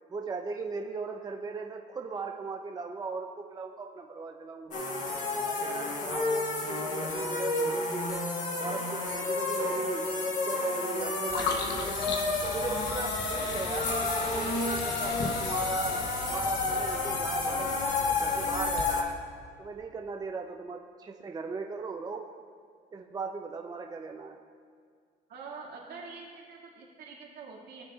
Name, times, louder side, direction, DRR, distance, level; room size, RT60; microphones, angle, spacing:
voice 1, 0.1-4.8 5.3-8.3 8.6-11.9 12.4-16.0 16.3-19.2 19.6-22.2 22.9-24.4, right 4 dB, 25° right, 2 dB, 0.5 m, -38 dB
sound 1, 4.7-19.0, left 3 dB, 45° left, 1.5 m, -31 dB
sound 2, 11.3-18.8, left 4 dB, 90° left, 1.0 m, -38 dB
sound 3, 12.3-18.4, equal, 15° left, 2.5 m, -49 dB
voice 2, 25.3-27.8, right 4 dB, 70° right, -3 dB, 2.2 m, -45 dB
17.5 x 6.5 x 2.4 m, 2.1 s
cardioid pair, 110°, 17 cm